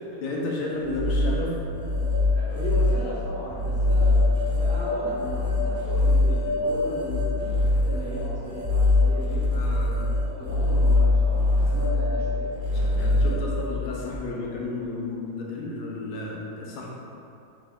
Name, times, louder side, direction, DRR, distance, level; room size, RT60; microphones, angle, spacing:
voice 1, 0.2-1.6 7.0-7.2 9.5-10.1 12.7-16.9, left 2 dB, 80° left, -3 dB, 1.1 m, -32 dB
sound 1, 0.7-14.2, left 2 dB, 55° left, 0.5 m, -23 dB
voice 2, 2.3-9.6 10.2-13.4, equal, 60° right, -12 dB, 0.5 m, -36 dB
3.7 x 2.2 x 3.4 m, 2.7 s
omnidirectional pair, 1.7 m